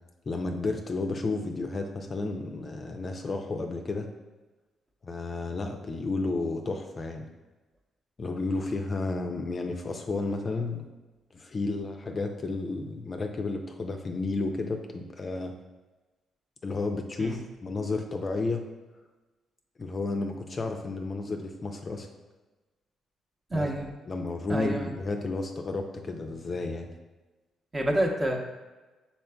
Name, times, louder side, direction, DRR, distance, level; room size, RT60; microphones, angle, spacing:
voice 1, 0.3-4.1 5.0-7.3 8.2-10.8 11.3-15.5 16.6-18.6 19.8-22.1 23.5-23.7 24.1-26.9, left 3 dB, 35° left, 4 dB, 0.4 m, -32 dB
voice 2, 23.5-23.9 24.5-24.9 27.7-28.4, right 1 dB, 25° right, 1 dB, 0.8 m, -28 dB
5.6 x 4.2 x 2.2 m, 1.2 s
cardioid pair, 90°, 0 cm